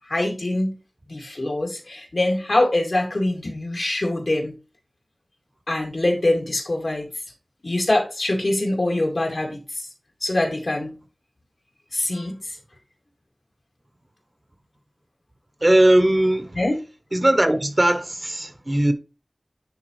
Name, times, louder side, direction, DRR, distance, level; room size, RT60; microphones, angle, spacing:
voice 1, 0.1-0.8 1.1-4.6 5.7-7.1 7.6-9.6 10.2-10.9 11.9-12.3 16.6-16.8, left 1 dB, 70° left, 2.1 m, -23 dB
voice 2, 15.6-16.6 17.1-18.9, right 1 dB, 35° right, 0.9 m, -19 dB
10.5 x 3.6 x 3.1 m
wide cardioid pair, 50°, 0 cm